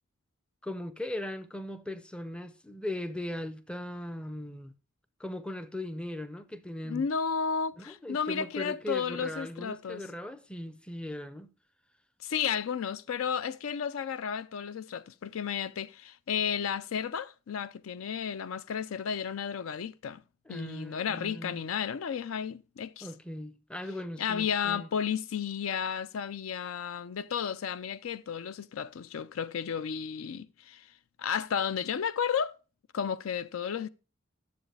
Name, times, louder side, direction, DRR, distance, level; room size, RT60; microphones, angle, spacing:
voice 1, 0.6-4.7 5.2-7.0 7.8-11.5 20.5-21.6 23.0-24.9, left 1 dB, 5° left, 0.4 m, -39 dB
voice 2, 6.8-10.0 12.2-20.2 20.5-23.1 24.2-30.9 31.2-32.6 32.9-33.9, left 7 dB, 80° left, 0.4 m, -33 dB
10.0 x 7.1 x 3.3 m
head